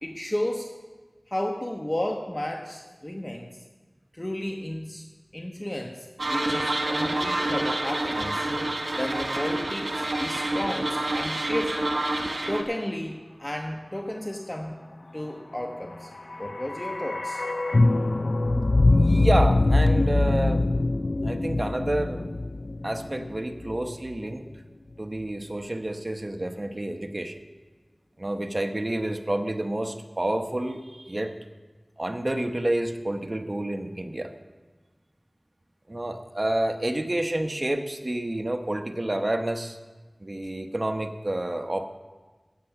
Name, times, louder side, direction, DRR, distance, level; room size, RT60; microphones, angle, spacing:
voice 1, 0.0-0.7 1.3-3.6 4.1-5.1 5.3-8.5 8.9-11.8 12.5-14.8 15.1-16.1 16.4-17.4, left 1 dB, 25° left, 2 dB, 1.0 m, -33 dB
sound 1, 6.2-12.6, right 1 dB, 90° right, 1.4 m, -28 dB
sound 2, 16.0-24.2 24.4-24.5, left 2 dB, 65° left, 0.4 m, -23 dB
voice 2, 18.9-20.7 21.2-22.3 22.8-24.5 25.0-27.4 28.2-31.3 32.0-34.3 35.9-39.8 40.2-41.9, right 1 dB, 40° right, 6 dB, 1.0 m, -29 dB
14.5 x 8.4 x 5.9 m, 1.3 s
wide cardioid pair, 45°, 0 cm